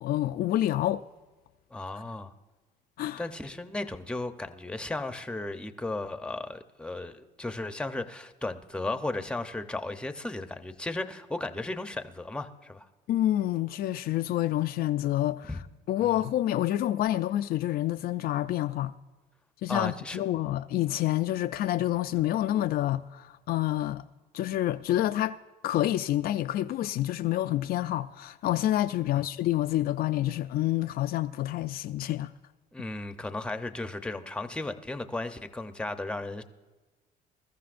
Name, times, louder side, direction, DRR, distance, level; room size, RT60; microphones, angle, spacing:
voice 1, 0.0-1.1 3.0-3.2 13.1-15.5 15.9-18.9 19.6-24.0 24.3-25.4 25.6-32.3, left 13 dB, 65° left, 0.4 m, -28 dB
voice 2, 1.7-2.3 3.2-12.9 15.5-15.6 16.0-16.2 19.7-20.2 29.0-29.2 32.7-36.4, left 2 dB, 5° left, 0.7 m, -35 dB
21.5 x 13.5 x 2.5 m
cardioid pair, 110°, 17 cm